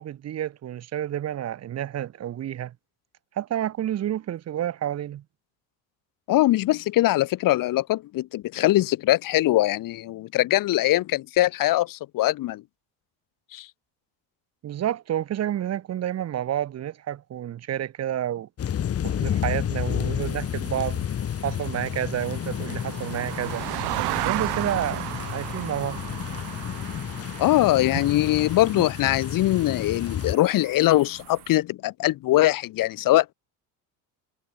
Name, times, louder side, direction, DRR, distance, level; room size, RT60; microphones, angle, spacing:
voice 1, 0.0-2.7 3.4-5.2 14.6-18.5 19.0-21.1 21.4-23.6 24.2-25.0 25.3-26.0 27.9-28.1, right 11 dB, 40° right, 1.8 m, -29 dB
voice 2, 6.3-12.6 13.5-13.7 27.4-33.3, left 16 dB, 55° left, 2.7 m, -22 dB
sound 1, 18.6-30.3, left 9 dB, 40° left, 4.2 m, -31 dB
sound 2, 20.2-31.6, right 23 dB, 75° right, 5.4 m, -36 dB
cardioid pair, 140°, 38 cm